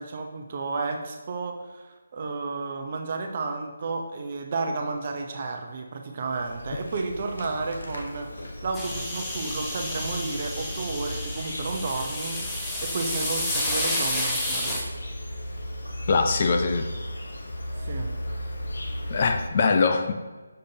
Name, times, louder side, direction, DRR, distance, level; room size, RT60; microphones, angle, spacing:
voice 1, 0.0-14.8 17.8-18.1, right 3 dB, 40° right, 3 dB, 0.7 m, -32 dB
Insect, 6.2-19.5, equal, 75° left, 0.9 m, -36 dB
sound 1, 8.7-14.8, left 1 dB, 10° left, 0.8 m, -30 dB
voice 2, 16.1-16.9 19.1-20.1, left 4 dB, 40° left, 6 dB, 0.5 m, -22 dB
6.7 x 5.0 x 2.8 m, 1.3 s
figure-of-eight pair, 155°, 0 cm